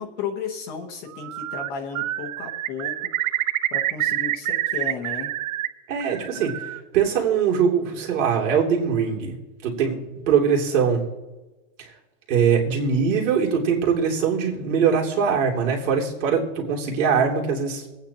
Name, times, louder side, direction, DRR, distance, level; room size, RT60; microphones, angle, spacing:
voice 1, 0.0-3.0 3.7-5.3, left 6 dB, 25° left, 3 dB, 0.8 m, -33 dB
Bird, 1.1-1.7 1.9-5.7 6.0-6.8, right 14 dB, 90° right, 0.7 m, -27 dB
voice 2, 5.9-9.4 9.6-10.0 10.3-11.0 11.8-11.9 12.3-17.9, right 6 dB, 65° right, -1 dB, 2.9 m, -22 dB
23.0 x 8.9 x 2.9 m, 1.1 s
supercardioid pair, 170°, 40 cm